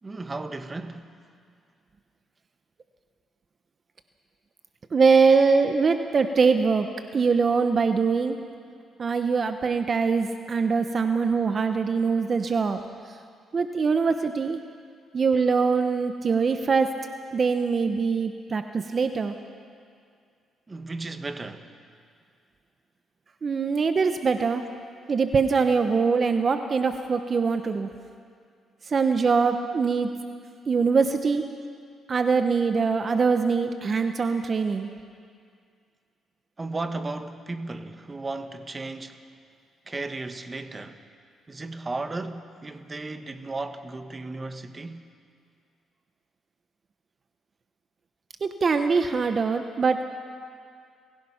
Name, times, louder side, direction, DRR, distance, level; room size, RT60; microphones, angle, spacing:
voice 1, 0.0-1.1 20.7-21.7 36.6-39.2 39.9-41.0 41.5-45.1, right 3 dB, 25° right, 1.4 m, -35 dB
voice 2, 4.9-6.9 7.1-8.4 9.0-12.8 13.5-14.6 15.1-16.9 17.3-19.4 23.4-24.6 25.1-27.9 28.9-30.1 30.7-31.4 32.1-34.9 48.4-50.0, right 5 dB, 40° right, 1.0 m, -23 dB
29.5 x 16.0 x 5.8 m
cardioid pair, 90°, 0 cm